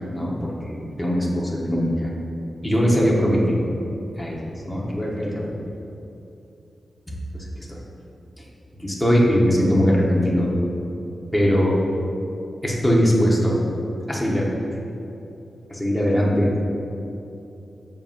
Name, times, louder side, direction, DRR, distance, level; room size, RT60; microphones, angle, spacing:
voice 1, 0.1-2.1 2.6-3.6 4.2-4.4 4.7-5.6 7.7-7.8 8.8-10.5 11.3-11.8 12.6-13.6 14.1-14.5 15.7-16.5, equal, 5° left, -4 dB, 1.2 m, -20 dB
15.0 x 5.5 x 2.6 m, 2.8 s
wide cardioid pair, 155°, 0 cm